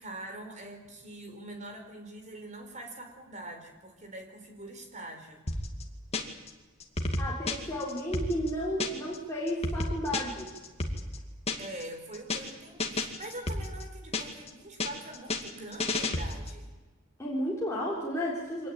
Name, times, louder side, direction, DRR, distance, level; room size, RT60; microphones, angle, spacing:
voice 1, 0.0-5.4 11.6-16.7, right 1 dB, 35° right, 4 dB, 4.4 m, -44 dB
sound 1, 5.5-6.5 6.8-9.2 9.5-11.8 12.1-12.5 12.8-14.5 14.8-16.6, left 2 dB, 30° left, 2.4 m, -32 dB
voice 2, 7.2-10.5 17.2-18.7, equal, 15° left, -5 dB, 4.0 m, -32 dB
25.0 x 19.0 x 8.8 m, 1.3 s
head